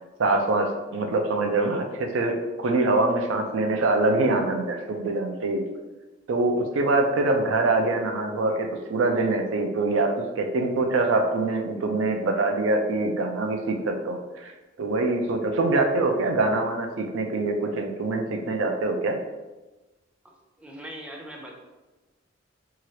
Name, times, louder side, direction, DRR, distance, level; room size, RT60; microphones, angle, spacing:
voice 1, 0.2-5.7 6.3-14.5 14.8-19.2, right 2 dB, 85° right, 4 dB, 0.4 m, -24 dB
voice 2, 20.2-21.6, equal, 5° right, 0 dB, 0.4 m, -41 dB
2.8 x 2.4 x 3.0 m, 1.1 s
head